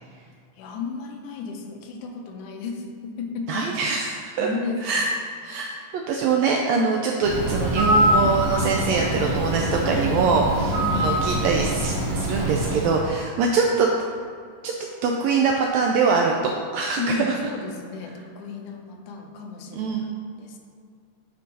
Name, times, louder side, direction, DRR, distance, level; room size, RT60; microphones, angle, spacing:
voice 1, 0.5-4.0 4.4-5.1 10.7-11.3 17.0-20.6, left 3 dB, 80° left, 3 dB, 2.1 m, -33 dB
voice 2, 3.5-4.5 4.8-5.1 5.4-5.7 5.9-13.9 14.6-14.7 15.0-17.1 19.8-20.1, right 5 dB, 90° right, 0 dB, 1.5 m, -23 dB
Bird, 7.2-13.1, equal, 55° right, 1.8 m, -24 dB
9.1 x 4.5 x 4.1 m, 2.2 s
omnidirectional pair, 3.7 m